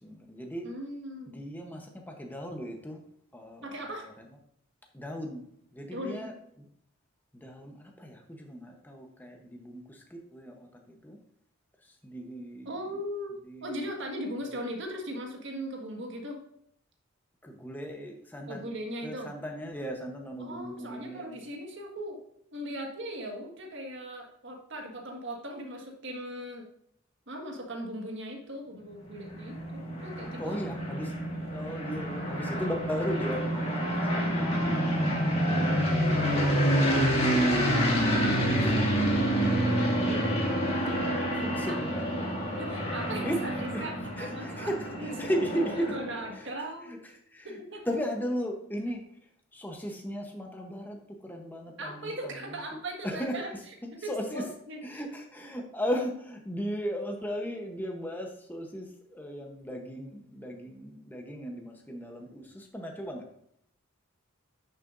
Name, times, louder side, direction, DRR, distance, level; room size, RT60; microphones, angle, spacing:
voice 1, 0.0-0.7 1.3-3.0 3.3-4.3 4.9-5.5 5.7-6.7 7.3-11.2 11.8-12.7 13.5-13.9 14.5-14.6 17.4-18.7 19.0-21.5 30.4-31.2 31.5-35.2 37.9-42.3 43.1-43.4 43.7-43.9 44.2-46.0 46.3-46.5 46.8-47.6 47.9-49.0 49.5-52.6 53.0-53.4 54.0-54.4 54.8-63.3, equal, 10° left, 2 dB, 0.8 m, -37 dB
voice 2, 0.6-1.4 3.6-4.1 5.9-6.3 12.6-13.3 13.6-16.4 18.5-19.3 20.4-22.2 22.5-26.7 27.3-30.6 35.4-36.4 40.1-40.3 40.7-41.0 41.7-41.8 42.6-44.7 45.0-45.1 45.9-47.0 47.4-47.9 51.8-53.5 54.0-55.0, right 1 dB, 55° right, 1 dB, 1.6 m, -39 dB
sound 1, 29.1-46.3, equal, 30° left, 2.0 m, -28 dB
9.7 x 6.7 x 2.5 m, 0.71 s
head